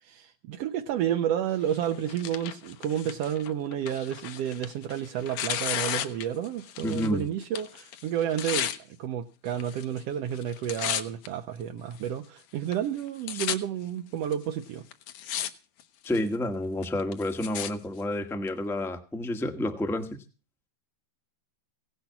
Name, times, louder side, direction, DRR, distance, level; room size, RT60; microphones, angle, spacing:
voice 1, 0.0-14.8, right 10 dB, 70° right, 1.6 m, -31 dB
Tearing, 1.7-7.2 7.4-8.8 9.5-10.0 10.3-11.3 11.9-12.0 12.7-12.8 13.0-13.6 14.3-14.4 14.9-15.5 15.8-16.3 16.8-17.7 18.5-18.6, left 11 dB, 70° left, 2.2 m, -34 dB
voice 2, 6.8-7.2 16.0-20.1, left 1 dB, ahead, 0.5 m, -29 dB
17.0 x 10.5 x 5.8 m
omnidirectional pair, 3.6 m